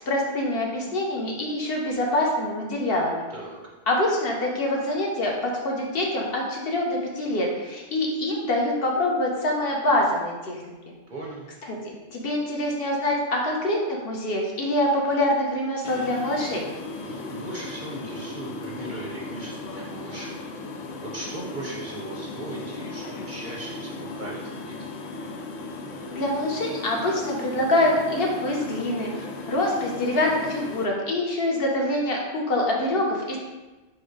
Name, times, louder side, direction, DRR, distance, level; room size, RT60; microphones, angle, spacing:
voice 1, 0.1-3.2 3.9-10.6 11.6-16.7 26.1-33.4, left 1 dB, 55° left, -1 dB, 0.9 m, -25 dB
voice 2, 11.1-11.5 17.0-20.4 21.0-24.8, right 2 dB, 50° right, -3 dB, 0.6 m, -38 dB
sound 1, 15.8-30.8, left 3 dB, 85° left, 0.9 m, -37 dB
4.6 x 2.2 x 4.6 m, 1.2 s
omnidirectional pair, 1.2 m